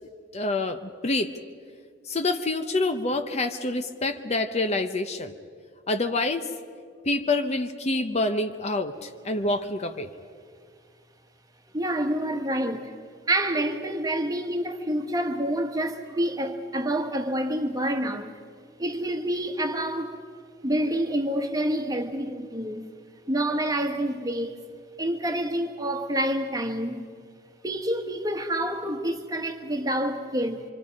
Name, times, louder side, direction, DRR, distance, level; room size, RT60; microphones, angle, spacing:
voice 1, 0.0-1.3 2.1-5.3 5.9-6.5 7.1-10.1, left 2 dB, 35° left, 0.8 m, -27 dB
voice 2, 11.7-12.9 13.3-18.3 18.8-20.2 20.6-22.9 23.3-24.5 25.0-27.0 27.6-30.6, right 1 dB, 20° right, 1.3 m, -27 dB
26.0 x 25.5 x 5.3 m
head